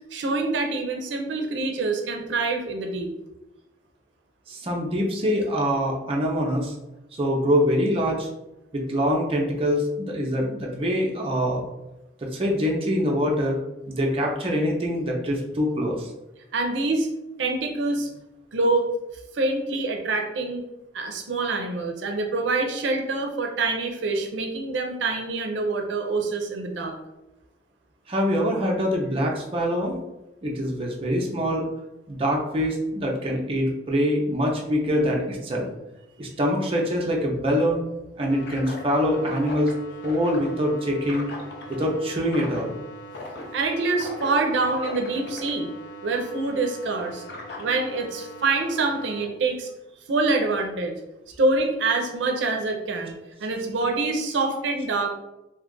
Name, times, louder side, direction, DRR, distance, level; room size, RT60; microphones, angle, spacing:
voice 1, 0.1-3.1 16.5-17.1 17.4-18.1 18.5-18.9 19.3-20.6 20.9-27.0 43.5-45.7 46.0-47.2 47.6-49.7 50.1-50.9 51.4-55.1, right 3 dB, 80° right, 3 dB, 0.5 m, -25 dB
voice 2, 4.5-6.7 7.2-8.3 8.7-11.6 12.2-13.6 13.9-16.1 28.1-30.0 30.4-31.7 32.1-35.7 36.2-37.8 38.2-39.7 40.0-41.3 41.7-42.7, equal, 30° right, -1 dB, 0.5 m, -24 dB
sound 1, 38.3-49.2, left 1 dB, 65° left, 0.6 m, -39 dB
2.7 x 2.4 x 3.7 m, 0.96 s
head